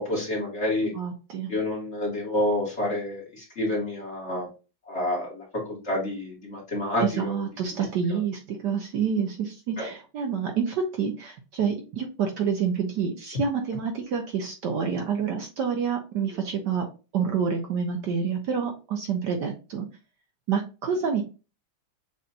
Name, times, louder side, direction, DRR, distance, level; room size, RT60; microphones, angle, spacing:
voice 1, 0.0-0.9 1.5-4.5 4.9-7.4 9.8-9.9, left 1 dB, 35° left, -3 dB, 1.8 m, -28 dB
voice 2, 0.9-1.5 7.0-16.9 17.1-19.9 20.5-21.2, right 6 dB, 65° right, 3 dB, 1.2 m, -28 dB
6.8 x 2.6 x 2.7 m, 0.32 s
omnidirectional pair, 2.3 m